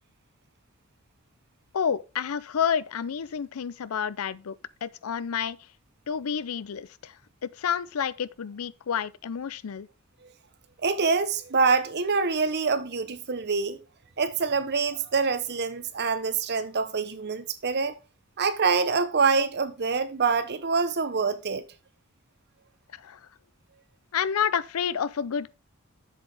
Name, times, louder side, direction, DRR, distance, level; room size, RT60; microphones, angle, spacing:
voice 1, 1.7-4.6 4.8-5.6 6.1-9.9 22.9-23.2 24.1-25.5, left 7 dB, 90° left, 0.5 m, -29 dB
voice 2, 10.8-13.8 14.2-18.0 18.4-21.7, right 4 dB, 50° right, 0.9 m, -25 dB
7.8 x 7.3 x 3.4 m
head